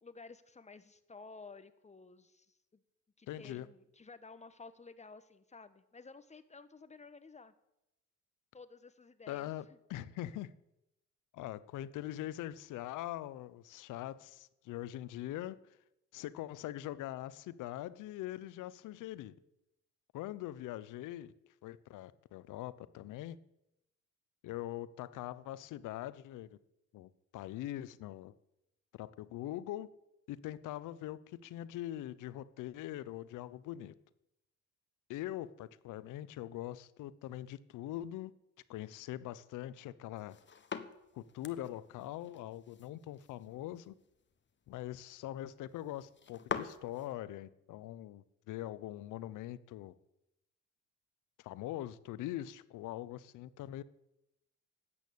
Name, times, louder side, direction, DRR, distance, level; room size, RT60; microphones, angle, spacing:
voice 1, 0.0-2.8 3.2-7.5 8.5-9.5, left 4 dB, 20° left, 12 dB, 1.2 m, -53 dB
voice 2, 3.3-3.7 9.3-9.6 9.9-10.5 11.3-15.6 16.1-19.3 20.1-21.3 21.6-23.4 24.4-26.6 26.9-28.3 28.9-29.9 30.3-33.9 35.1-38.3 38.7-40.4 41.1-43.9 44.7-49.9 51.4-53.8, left 13 dB, 90° left, 17 dB, 0.8 m, -42 dB
sound 1, 40.2-47.1, left 6 dB, 40° left, 1.3 m, -46 dB
13.0 x 8.8 x 8.5 m, 0.87 s
cardioid pair, 90°, 30 cm